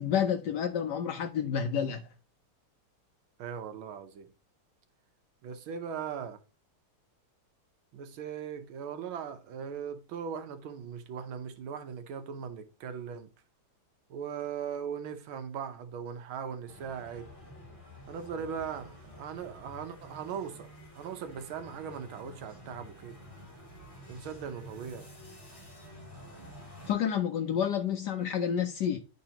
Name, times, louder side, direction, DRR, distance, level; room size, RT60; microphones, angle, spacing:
voice 1, 0.0-2.0 26.9-29.0, left 8 dB, 75° left, 1.0 m, -29 dB
voice 2, 3.4-4.3 5.4-6.4 7.9-13.3 14.1-17.3 18.1-20.7 20.9-23.2 24.1-25.1, right 7 dB, 75° right, 1.6 m, -39 dB
sound 1, 16.7-26.9, equal, 15° left, 4.0 m, -50 dB
10.5 x 3.9 x 2.8 m
omnidirectional pair, 2.3 m